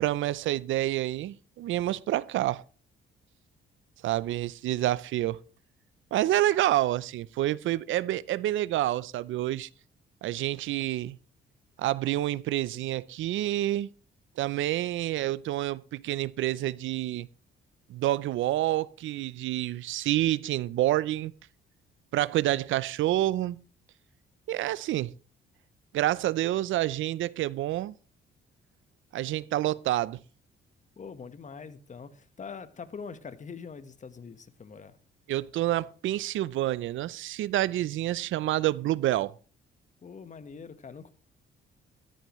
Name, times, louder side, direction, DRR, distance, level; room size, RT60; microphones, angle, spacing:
voice 1, 0.0-2.6 4.0-5.4 6.1-9.7 10.2-11.2 11.8-13.9 14.4-17.3 17.9-21.3 22.1-23.6 24.5-25.1 25.9-27.9 29.1-30.2 35.3-39.3, right 14 dB, 75° right, 0.5 m, -28 dB
voice 2, 31.0-35.0 40.0-41.1, left 5 dB, 40° left, 1.3 m, -43 dB
14.0 x 13.5 x 3.1 m
cardioid pair, 90°, 20 cm